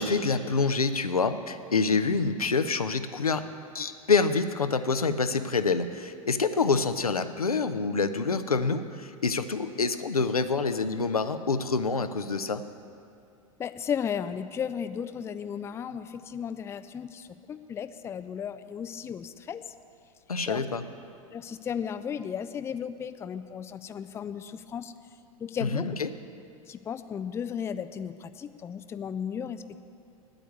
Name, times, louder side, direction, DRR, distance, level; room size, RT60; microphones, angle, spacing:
voice 1, 0.0-3.5 3.7-12.6 20.3-20.8 25.6-26.1, left 4 dB, 85° left, 10 dB, 0.6 m, -27 dB
voice 2, 13.6-19.7 20.5-20.6 21.3-24.9 25.4-25.9 26.7-29.8, left 8 dB, 15° left, 12 dB, 0.4 m, -35 dB
9.1 x 8.9 x 9.4 m, 2.4 s
figure-of-eight pair, 90°, 18 cm